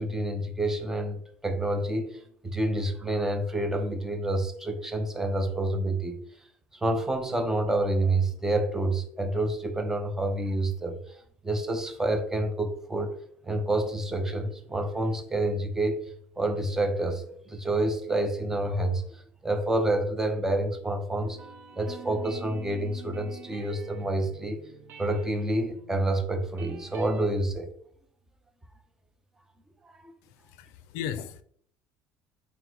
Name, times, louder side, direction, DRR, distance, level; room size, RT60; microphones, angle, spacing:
voice 1, 0.0-6.2 6.7-11.0 11.4-13.1 13.4-16.1 16.4-21.4 21.8-24.6 25.0-27.7 29.9-30.1, right 1 dB, 10° right, 6 dB, 0.5 m, -28 dB
sound 1, 21.2-27.3, right 5 dB, 55° right, 0.7 m, -47 dB
voice 2, 30.2-31.4, left 9 dB, 85° left, 13 dB, 0.4 m, -37 dB
3.8 x 2.1 x 4.4 m, 0.64 s
cardioid pair, 140°, 5 cm